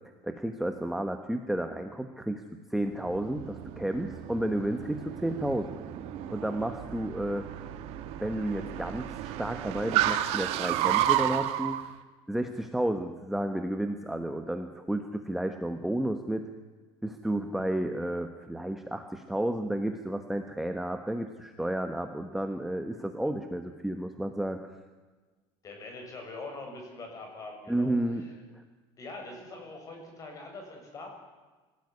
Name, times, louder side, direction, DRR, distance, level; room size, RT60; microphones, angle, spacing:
voice 1, 0.2-2.4 2.7-5.8 6.3-7.5 8.2-11.8 12.3-16.5 17.0-24.6 27.7-28.2 28.5-28.6, right 1 dB, ahead, 6 dB, 1.2 m, -32 dB
Car, 2.9-11.8, right 13 dB, 60° right, 1.7 m, -32 dB
voice 2, 25.6-28.3 29.0-31.1, left 2 dB, 30° left, 3 dB, 7.0 m, -43 dB
25.0 x 17.0 x 9.6 m, 1.3 s
cardioid pair, 160°, 12 cm